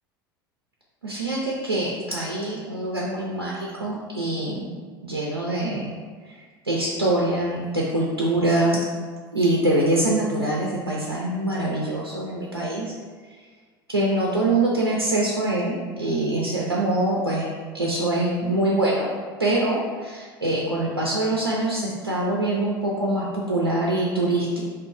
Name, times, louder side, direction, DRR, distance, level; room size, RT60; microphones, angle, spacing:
voice 1, 1.0-4.7 5.0-5.9 6.3-6.4 6.6-8.8 9.3-13.0 13.9-17.5 17.7-19.1 19.4-24.6, right 1 dB, 85° right, -4 dB, 0.5 m, -24 dB
3.0 x 3.0 x 4.5 m, 1.5 s
figure-of-eight pair, 75°, 12 cm